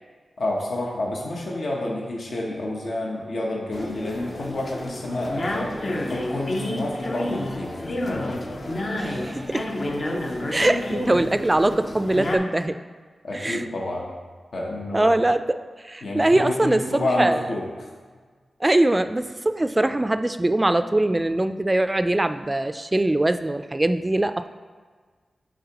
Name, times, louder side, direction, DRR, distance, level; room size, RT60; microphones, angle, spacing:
voice 1, 0.4-5.7 6.1-8.4 13.2-14.1 14.5-15.1 16.0-17.6, left 1 dB, 75° left, -2 dB, 0.9 m, -29 dB
sound 1, 3.7-12.4, left 1 dB, 55° left, 0.7 m, -30 dB
voice 2, 9.0-9.7 10.5-12.8 13.3-13.7 14.9-15.6 15.8-17.4 18.6-24.5, right 1 dB, 25° right, 10 dB, 0.3 m, -22 dB
9.3 x 3.7 x 2.9 m, 1.5 s
cardioid pair, 60°, 0 cm